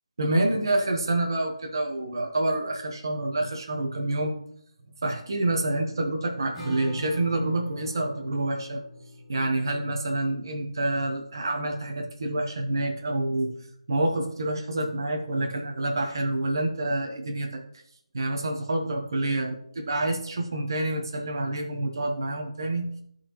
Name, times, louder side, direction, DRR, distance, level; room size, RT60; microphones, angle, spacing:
voice 1, 0.2-4.4 5.0-8.8 9.3-13.5 13.9-17.5 18.1-22.9, right 2 dB, 40° right, 2 dB, 1.1 m, -27 dB
Acoustic guitar / Strum, 6.5-12.0, right 1 dB, ahead, 1.8 m, -43 dB
13.0 x 4.4 x 3.0 m, 0.67 s
figure-of-eight pair, 175°, 3 cm